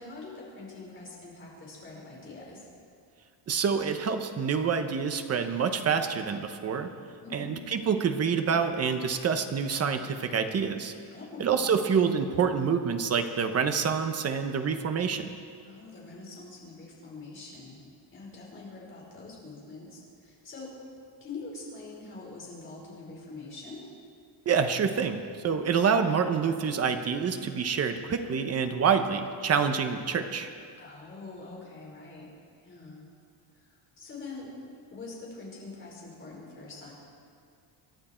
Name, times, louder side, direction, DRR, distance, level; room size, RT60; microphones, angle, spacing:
voice 1, 0.0-2.7 7.2-7.5 11.1-11.5 15.6-17.8 18.1-20.7 21.2-23.8 30.8-32.3 32.6-33.0 33.6-34.5 34.9-36.9, left 3 dB, 25° left, -4 dB, 4.8 m, -44 dB
voice 2, 3.5-6.9 7.3-10.9 11.4-15.3 24.5-30.5, right 6 dB, 30° right, 7 dB, 1.0 m, -27 dB
27.0 x 11.5 x 4.5 m, 2.3 s
cardioid pair, 175°, 47 cm